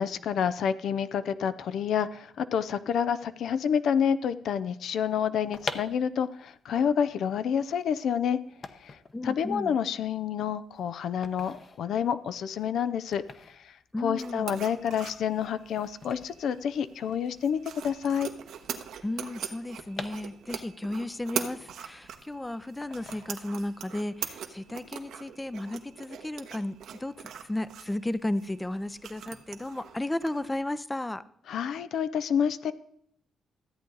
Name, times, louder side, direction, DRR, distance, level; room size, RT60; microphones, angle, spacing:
voice 1, 0.0-8.4 8.8-18.3 31.5-32.7, left 8 dB, 75° left, 13 dB, 0.5 m, -29 dB
sound 1, 5.3-17.4 17.7-17.8 17.9-20.8 21.2-22.3 22.8-23.8 24.2-24.4, left 4 dB, 45° left, 0.9 m, -44 dB
voice 2, 9.1-9.8 13.9-14.6 19.0-31.2, left 1 dB, 15° left, 16 dB, 0.5 m, -34 dB
sound 2, 14.2-30.6, right 8 dB, 85° right, 1.0 m, -42 dB
14.0 x 8.3 x 3.9 m, 0.71 s
cardioid pair, 90°, 0 cm